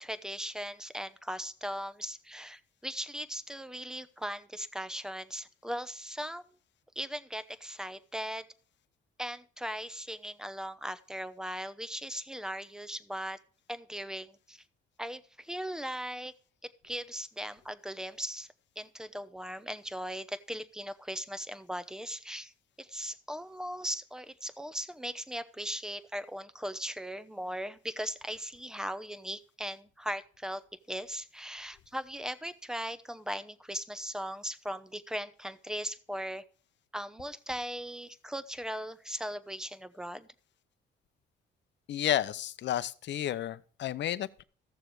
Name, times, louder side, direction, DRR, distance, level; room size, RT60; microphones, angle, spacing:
voice 1, 0.0-6.4 7.0-8.4 9.2-13.4 13.7-14.6 15.0-16.3 16.6-18.5 18.8-22.5 22.8-30.6 30.9-36.4 36.9-40.3, equal, 5° right, 0.8 m, -38 dB
voice 2, 41.9-44.4, left 11 dB, 65° left, 0.7 m, -31 dB
14.5 x 6.8 x 4.7 m
cardioid pair, 90°, 20 cm